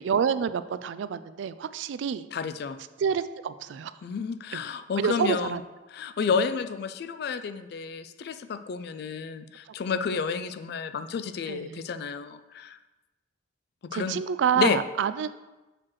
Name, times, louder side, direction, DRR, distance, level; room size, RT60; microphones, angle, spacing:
voice 1, 0.0-2.3 3.0-3.9 4.5-4.6 5.0-5.6 9.7-9.8 11.5-11.8 13.9-15.3, right 7 dB, 80° right, 14 dB, 0.3 m, -28 dB
voice 2, 2.3-2.8 4.0-5.6 5.9-12.8 13.9-14.2 14.6-14.8, left 6 dB, 60° left, 11 dB, 0.3 m, -30 dB
6.6 x 3.1 x 5.8 m, 1.1 s
head